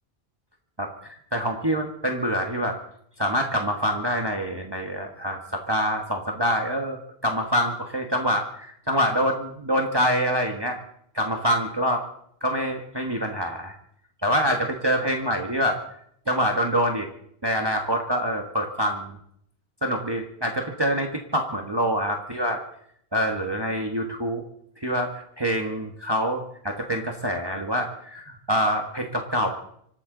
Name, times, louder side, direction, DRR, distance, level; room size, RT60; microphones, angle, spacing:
voice 1, 0.8-2.8 3.2-10.8 11.1-12.0 12.4-13.7 14.2-15.8 16.3-17.1 17.4-19.2 19.8-22.6 23.1-24.4 24.8-29.5, equal, 25° right, 2 dB, 1.5 m, -25 dB
25.5 x 13.0 x 3.9 m, 0.68 s
omnidirectional pair, 1.1 m